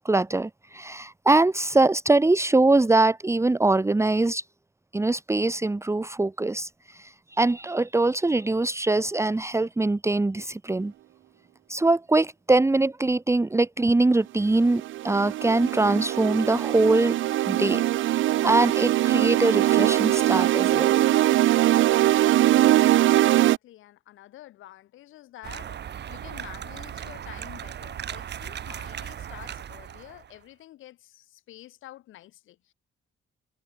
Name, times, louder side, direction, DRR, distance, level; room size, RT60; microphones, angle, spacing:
voice 1, 0.0-4.4 4.9-10.9 11.7-17.1 17.5-21.0, right 2 dB, 15° right, 1.4 m, -23 dB
sound 1, 14.4-23.6, right 14 dB, 75° right, 0.8 m, -21 dB
voice 2, 22.5-25.8 26.1-32.7, left 14 dB, 85° left, 4.3 m, -48 dB
sound 2, 25.4-30.4, right 9 dB, 60° right, 2.8 m, -37 dB
cardioid pair, 90°, 20 cm